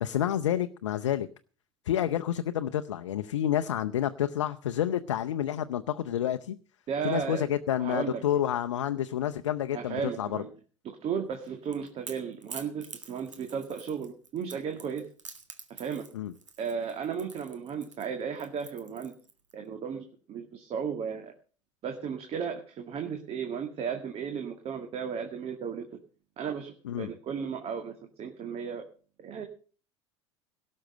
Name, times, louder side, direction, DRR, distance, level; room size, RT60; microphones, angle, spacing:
voice 1, 0.0-1.3 1.9-6.6 7.0-10.4 16.1-16.3 26.8-27.1, left 11 dB, 75° left, 8 dB, 0.7 m, -29 dB
voice 2, 6.9-7.5 7.8-8.2 9.7-10.5 10.8-15.1 15.7-16.1 16.6-19.1 19.5-21.3 21.8-25.9 26.4-27.9 28.2-28.8 29.2-29.4, right 7 dB, 40° right, 5 dB, 2.1 m, -34 dB
Crackle / Crack, 11.3-19.5, right 5 dB, 85° right, 1.7 m, -47 dB
17.5 x 6.5 x 7.7 m, 0.40 s
figure-of-eight pair, 75°, 15 cm